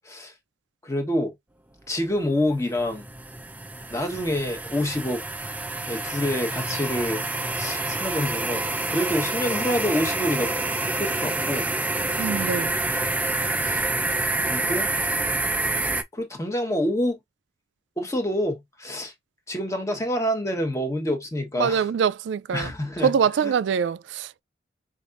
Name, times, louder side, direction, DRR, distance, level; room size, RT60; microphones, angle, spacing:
voice 1, 0.8-1.3 1.9-3.1 3.9-5.2 5.9-7.2 7.5-10.5 11.0-11.7 13.6-13.8 14.4-14.9 16.1-17.2 18.0-19.1 19.5-21.8 22.5-23.1 23.4-23.5, left 1 dB, 15° left, 1.1 m, -27 dB
sound 1, 2.2-16.0, right 2 dB, 10° right, 0.5 m, -27 dB
voice 2, 12.2-12.7 21.6-22.7 23.0-24.4, right 7 dB, 75° right, 0.3 m, -24 dB
5.2 x 2.5 x 2.5 m
head